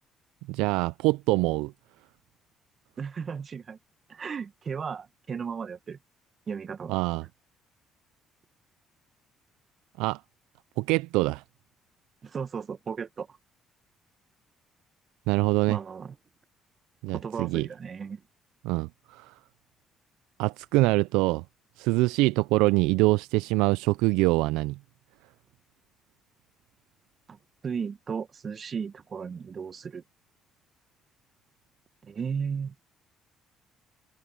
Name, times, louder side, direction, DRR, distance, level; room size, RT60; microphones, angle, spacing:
voice 1, 0.5-1.7 6.9-7.3 10.0-10.2 10.8-11.4 15.3-15.8 17.0-17.7 18.6-19.3 20.4-21.4 21.8-24.8, right 22 dB, 80° right, 0.4 m, -24 dB
voice 2, 3.0-3.8 4.1-6.0 6.5-7.0 12.2-13.4 15.7-16.2 17.1-18.2 27.3-27.4 27.6-30.0 32.0-32.7, right 6 dB, 45° right, 1.8 m, -35 dB
hypercardioid pair, 60°, 0 cm